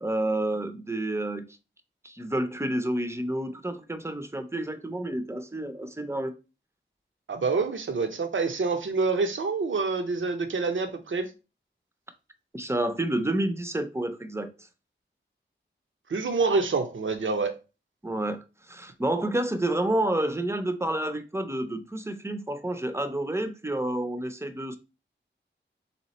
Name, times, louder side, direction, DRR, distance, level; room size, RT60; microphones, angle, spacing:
voice 1, 0.0-1.4 2.0-6.3 12.5-14.7 18.0-24.8, right 1 dB, 15° right, 0.5 m, -29 dB
voice 2, 7.3-11.3 16.1-17.5, right 4 dB, 75° right, 0.6 m, -27 dB
3.6 x 2.9 x 4.1 m
wide cardioid pair, 80°, 20 cm